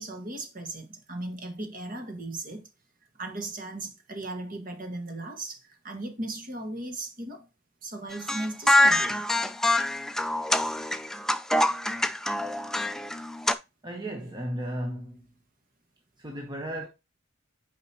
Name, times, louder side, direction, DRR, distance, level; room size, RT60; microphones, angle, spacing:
voice 1, 0.0-2.7 3.1-7.5 7.8-9.2, right 2 dB, 45° right, 1.7 m, -37 dB
sound 1, 8.1-13.5, left 1 dB, ahead, 0.4 m, -25 dB
voice 2, 13.8-15.2 16.2-16.9, right 1 dB, 20° right, 1.0 m, -34 dB
9.0 x 5.1 x 2.9 m
head